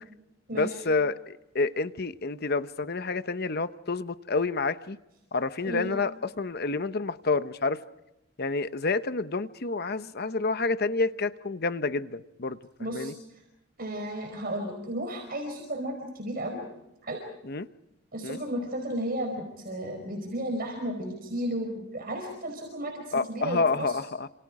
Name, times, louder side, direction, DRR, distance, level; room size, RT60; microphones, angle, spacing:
voice 1, 0.5-5.0 5.3-7.8 8.4-12.6 12.9-13.1 17.4-17.7 18.2-18.4 23.1-24.3, left 3 dB, 50° left, 0.9 m, -29 dB
voice 2, 12.8-13.1 13.8-16.6 17.0-17.2 18.1-24.0, right 1 dB, 45° right, 5.0 m, -33 dB
30.0 x 27.5 x 4.9 m
head